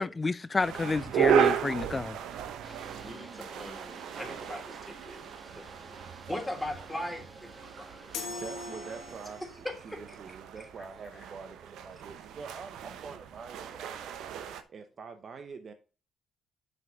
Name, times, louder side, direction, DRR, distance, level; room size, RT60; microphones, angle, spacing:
voice 1, 0.0-2.2, left 3 dB, 30° left, 0.5 m, -30 dB
sound 1, 0.5-14.6, right 8 dB, 80° right, 0.8 m, -34 dB
sound 2, 2.6-9.2, right 1 dB, 20° right, 1.5 m, -51 dB
voice 2, 3.0-5.2 5.5-5.6 6.3-8.4 9.6-10.0, left 1 dB, 10° left, 3.1 m, -39 dB
sound 3, 8.1-9.6, left 3 dB, 85° left, 1.5 m, -40 dB
voice 3, 8.3-14.2 14.7-15.7, right 5 dB, 50° right, 0.9 m, -45 dB
6.0 x 5.3 x 5.3 m
supercardioid pair, 65°, 0 cm